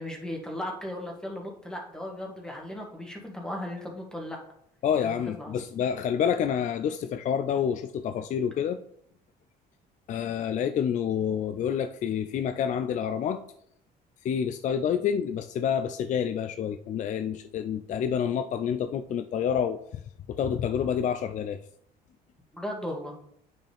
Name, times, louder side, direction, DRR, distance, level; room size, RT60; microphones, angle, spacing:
voice 1, 0.0-4.4 4.9-5.5 22.5-23.1, left 1 dB, 5° left, 0 dB, 1.7 m, -36 dB
voice 2, 4.8-8.8 10.1-13.4 14.2-20.0 20.3-21.6, left 8 dB, 45° left, 9 dB, 0.4 m, -28 dB
8.7 x 5.5 x 3.5 m, 0.70 s
cardioid pair, 110°, 17 cm